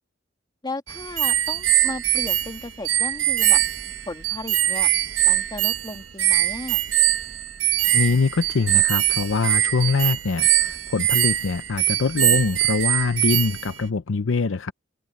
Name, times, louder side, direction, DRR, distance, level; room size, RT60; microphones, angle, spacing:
voice 1, 0.6-3.6 4.1-4.9 5.2-6.8, left 2 dB, 20° left, 2.5 m, -35 dB
sound 1, 0.9-13.8, right 12 dB, 85° right, 1.2 m, -22 dB
voice 2, 7.9-14.7, left 4 dB, 75° left, 0.6 m, -23 dB
head